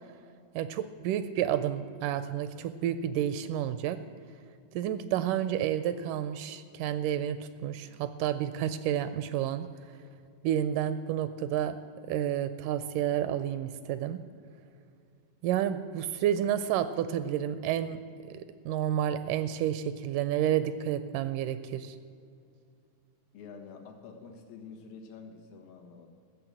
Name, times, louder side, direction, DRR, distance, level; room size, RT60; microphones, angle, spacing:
voice 1, 0.6-4.0 4.7-10.0 10.4-11.8 12.1-14.2 15.4-18.0 18.3-22.0, right 10 dB, 80° right, 12 dB, 1.9 m, -30 dB
voice 2, 23.3-26.1, left 5 dB, 90° left, 2 dB, 3.3 m, -47 dB
15.0 x 6.8 x 9.0 m, 2.4 s
omnidirectional pair, 4.0 m